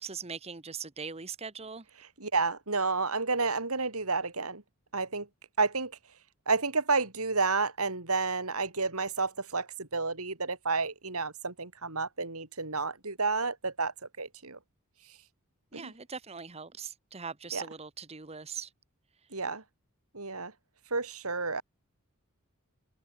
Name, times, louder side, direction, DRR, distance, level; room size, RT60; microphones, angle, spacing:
voice 1, 0.0-1.8 15.7-18.7, right 6 dB, 30° right, 1.2 m, -41 dB
voice 2, 2.2-4.6 4.9-5.3 5.6-5.9 6.5-14.6 15.7-15.9 17.5-17.7 19.3-19.6 20.1-20.5 20.9-21.6, right 4 dB, 80° right, 4.1 m, -30 dB
head